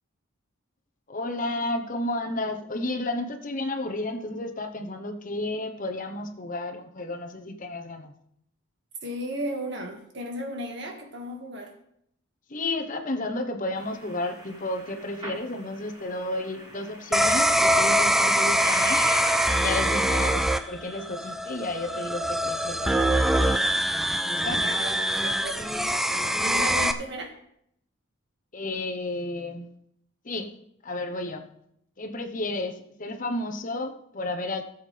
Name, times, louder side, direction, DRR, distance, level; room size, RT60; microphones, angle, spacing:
voice 1, 1.1-8.1 12.5-19.0 19.5-23.8 24.2-24.6 28.5-29.7 30.2-30.5 30.8-31.5 32.0-32.7 33.0-34.7, left 2 dB, 40° left, 5 dB, 0.9 m, -32 dB
voice 2, 9.0-11.7 24.5-27.3, equal, 55° right, 3 dB, 1.8 m, -35 dB
sound 1, 13.7-20.1, right 1 dB, 25° right, 3.3 m, -40 dB
sound 2, 17.1-26.9, equal, ahead, 0.3 m, -23 dB
17.0 x 7.2 x 3.4 m, 0.72 s
head